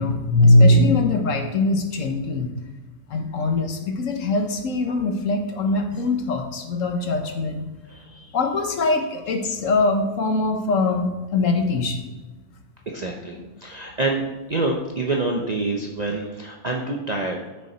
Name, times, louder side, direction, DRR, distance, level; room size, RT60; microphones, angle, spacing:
voice 1, 0.0-2.5 3.1-7.6 8.3-12.1 13.4-13.5, left 2 dB, 65° left, 4 dB, 1.2 m, -21 dB
voice 2, 7.9-8.3 12.9-14.2 14.5-17.4, right 2 dB, 40° right, 0 dB, 0.6 m, -27 dB
6.9 x 6.5 x 4.3 m, 1.2 s
omnidirectional pair, 1.5 m